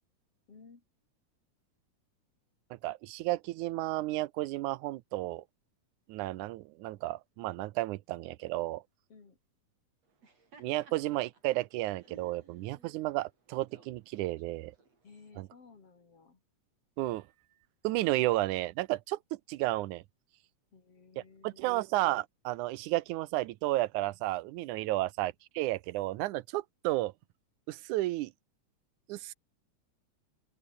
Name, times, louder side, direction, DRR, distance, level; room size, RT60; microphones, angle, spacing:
voice 1, 0.5-0.8 9.1-9.4 15.0-16.4 20.7-21.8 24.8-25.1, left 5 dB, 50° left, 4.7 m, -56 dB
voice 2, 2.7-5.4 6.1-8.8 10.6-14.7 15.4-15.5 17.0-17.2 17.8-19.2 19.5-20.0 21.4-27.1 27.7-28.3 29.1-29.3, right 17 dB, 85° right, 2.2 m, -32 dB
Laughter, 10.0-15.3, right 4 dB, 55° right, 6.3 m, -60 dB
open air
omnidirectional pair, 3.4 m